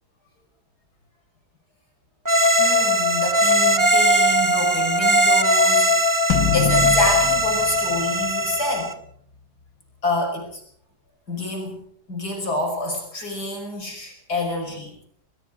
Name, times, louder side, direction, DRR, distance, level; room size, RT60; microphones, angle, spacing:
sound 1, 2.2-8.9, equal, 10° right, 1.3 m, -19 dB
voice 1, 2.6-8.9 10.0-10.6 11.3-11.8 12.1-14.9, left 2 dB, 65° left, 3 dB, 6.3 m, -28 dB
sound 2, 6.3-8.8, left 7 dB, 85° left, 2.2 m, -25 dB
22.5 x 22.5 x 5.2 m, 0.64 s
omnidirectional pair, 1.8 m